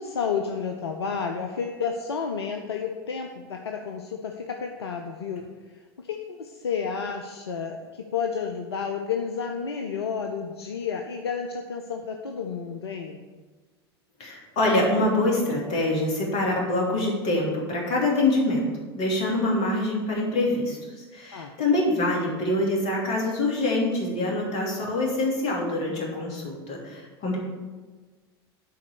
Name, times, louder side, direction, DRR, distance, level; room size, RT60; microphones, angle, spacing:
voice 1, 0.0-13.3 21.3-21.6, left 6 dB, 80° left, 3 dB, 0.6 m, -31 dB
voice 2, 14.2-18.7 19.0-27.4, left 2 dB, 50° left, -2 dB, 3.0 m, -25 dB
10.5 x 4.2 x 6.9 m, 1.4 s
figure-of-eight pair, 80°, 13 cm